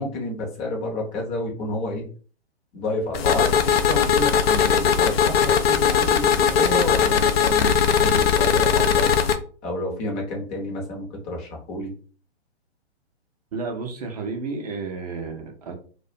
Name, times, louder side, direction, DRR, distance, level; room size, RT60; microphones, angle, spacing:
voice 1, 0.0-2.1 2.7-9.1 9.6-11.9, left 2 dB, 20° left, 0 dB, 0.7 m, -30 dB
sound 1, 3.1-9.4, left 7 dB, 60° left, 0.4 m, -19 dB
voice 2, 13.5-15.7, right 4 dB, 35° right, 4 dB, 0.5 m, -31 dB
2.3 x 2.1 x 2.7 m, 0.40 s
figure-of-eight pair, 130°, 33 cm